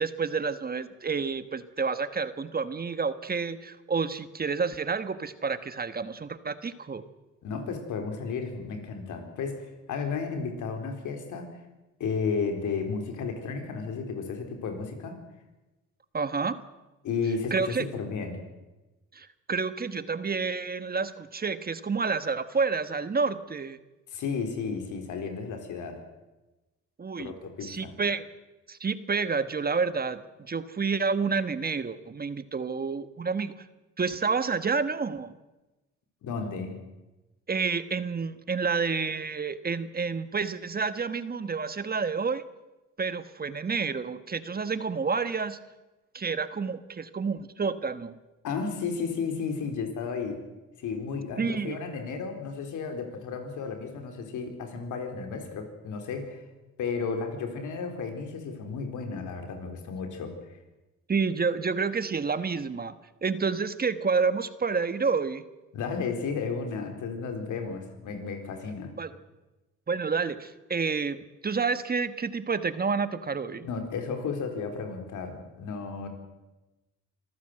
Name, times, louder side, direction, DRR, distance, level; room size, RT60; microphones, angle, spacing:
voice 1, 0.0-7.0 16.1-16.6 17.5-17.9 19.1-23.8 27.0-27.3 27.6-28.3 28.7-33.5 34.0-35.3 37.5-42.4 43.0-45.6 46.1-48.1 51.4-51.8 61.1-62.9 63.2-65.4 69.0-69.1 69.9-73.7, right 5 dB, 30° right, 12 dB, 1.3 m, -29 dB
voice 2, 7.4-11.5 12.0-15.2 17.0-18.4 24.1-26.0 27.2-27.9 36.2-36.8 48.4-50.4 50.8-56.4 56.8-60.4 65.7-69.0 73.6-76.1, left 5 dB, 80° left, 5 dB, 4.1 m, -33 dB
26.0 x 14.5 x 7.7 m, 1.1 s
cardioid pair, 90°, 30 cm